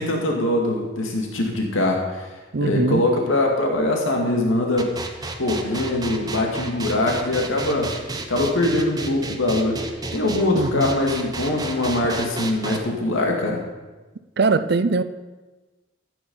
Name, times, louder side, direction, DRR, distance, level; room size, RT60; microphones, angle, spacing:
voice 1, 0.0-2.3 2.6-4.9 5.4-7.9 8.3-9.8 10.1-13.6, left 1 dB, 85° left, 0 dB, 2.2 m, -22 dB
voice 2, 2.5-3.0 10.5-10.9 14.4-15.0, right 3 dB, 55° right, 13 dB, 0.5 m, -21 dB
sound 1, 4.8-12.8, right 2 dB, 20° right, 1.0 m, -31 dB
14.0 x 8.7 x 5.5 m, 1.2 s
head